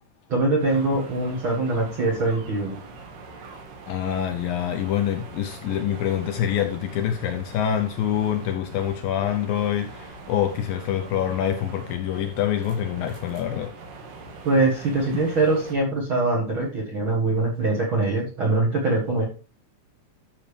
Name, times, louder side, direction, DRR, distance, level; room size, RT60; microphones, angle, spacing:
voice 1, 0.3-2.8 14.4-19.2, right 2 dB, 50° right, 1.6 m, -23 dB
sound 1, 0.6-15.8, right 3 dB, 75° right, 3.8 m, -43 dB
voice 2, 3.9-13.7, left 10 dB, 75° left, 2.2 m, -26 dB
11.5 x 7.0 x 3.3 m
omnidirectional pair, 4.7 m